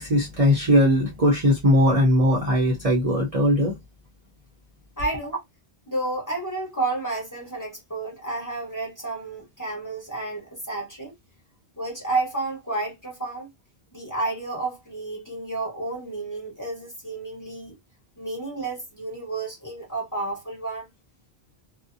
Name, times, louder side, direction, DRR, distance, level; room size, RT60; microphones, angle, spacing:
voice 1, 0.0-3.7, equal, 40° right, 0.7 m, -19 dB
voice 2, 5.0-5.4 5.9-11.1 11.8-13.5 13.9-17.7 18.2-20.9, right 2 dB, 20° left, 1.1 m, -31 dB
2.5 x 2.1 x 2.6 m
omnidirectional pair, 1.1 m